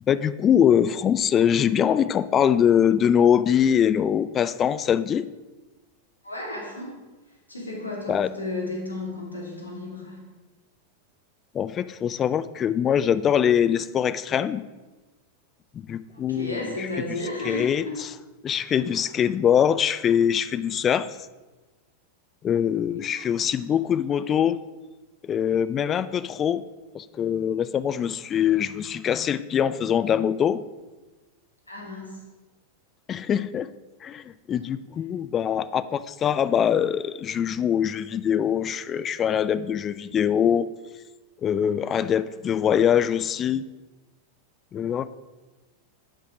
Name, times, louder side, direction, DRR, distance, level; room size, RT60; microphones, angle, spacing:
voice 1, 0.1-5.3 8.1-8.3 11.5-14.6 15.9-17.2 17.4-18.1 18.4-21.1 22.4-24.6 25.2-26.6 26.9-30.6 33.1-33.7 34.0-40.7 41.4-43.6 44.7-45.1, left 8 dB, 25° left, 16 dB, 0.4 m, -23 dB
voice 2, 6.2-6.9 7.5-10.2 16.1-18.0 23.1-23.2 31.7-32.1, left 2 dB, 80° left, -2 dB, 2.9 m, -33 dB
10.0 x 5.8 x 6.0 m, 1.2 s
figure-of-eight pair, 90°, 0 cm